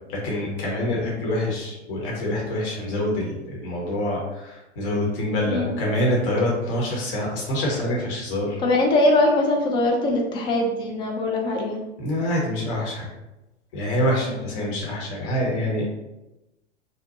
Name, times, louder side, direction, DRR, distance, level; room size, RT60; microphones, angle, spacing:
voice 1, 0.1-8.6 12.0-13.1 13.7-15.9, left 1 dB, 50° left, -3 dB, 1.0 m, -26 dB
voice 2, 5.5-5.8 8.6-11.8 14.3-14.7, left 2 dB, 15° left, 0 dB, 0.4 m, -22 dB
2.7 x 2.1 x 3.9 m, 0.97 s
figure-of-eight pair, 95°, 36 cm